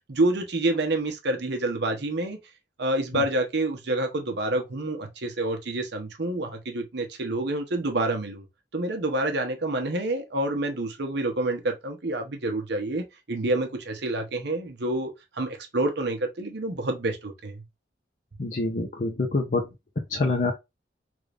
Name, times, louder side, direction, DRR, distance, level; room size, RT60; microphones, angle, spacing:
voice 1, 0.1-2.4 2.8-8.4 8.7-17.6, right 2 dB, 70° right, 0.9 m, -28 dB
voice 2, 18.4-19.7 20.1-20.5, left 3 dB, 45° left, 0.7 m, -26 dB
3.5 x 2.5 x 3.3 m
head